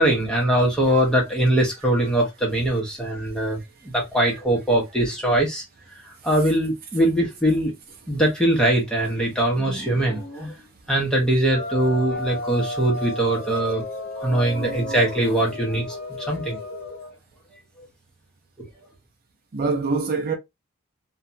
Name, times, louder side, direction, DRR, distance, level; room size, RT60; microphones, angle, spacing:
voice 1, 0.0-3.6 3.9-5.6 6.2-7.7 8.1-10.5 10.9-13.8 14.2-16.6, right 1 dB, 5° left, 0.9 m, -22 dB
sound 1, 11.5-17.1, left 2 dB, 70° left, 0.7 m, -33 dB
voice 2, 14.2-15.3 19.5-20.3, right 4 dB, 45° right, 0.5 m, -27 dB
2.6 x 2.2 x 2.6 m
head